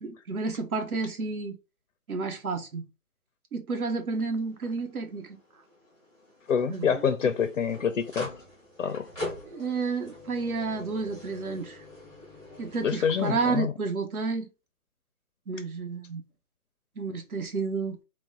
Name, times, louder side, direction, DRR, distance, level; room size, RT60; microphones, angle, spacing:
voice 1, 0.0-1.6 2.1-2.8 3.5-5.4 6.6-7.0 9.4-11.8 12.6-14.5 15.5-16.2 17.0-18.0, right 4 dB, 70° right, 1.2 m, -31 dB
sound 1, 3.9-13.6, left 2 dB, 10° right, 0.9 m, -44 dB
voice 2, 6.5-8.3 8.8-9.1 12.8-13.7, left 7 dB, 60° left, 0.6 m, -26 dB
3.9 x 2.3 x 3.7 m
hypercardioid pair, 160°, 44 cm